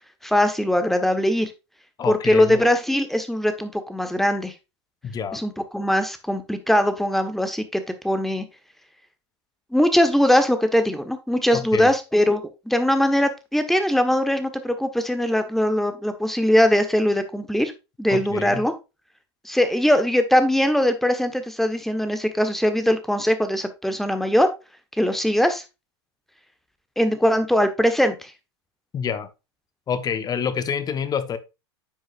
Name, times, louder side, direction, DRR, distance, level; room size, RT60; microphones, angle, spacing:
voice 1, 0.2-1.5 2.0-4.5 5.3-8.4 9.7-17.7 18.0-18.7 19.4-24.5 25.0-25.6 27.0-28.3, equal, ahead, 1.3 m, -21 dB
voice 2, 2.0-2.6 5.0-5.4 11.5-11.9 18.1-18.6 28.9-29.3 29.9-31.4, left 7 dB, 25° left, 1.1 m, -27 dB
9.9 x 6.3 x 2.5 m
hypercardioid pair, 95°, 14 cm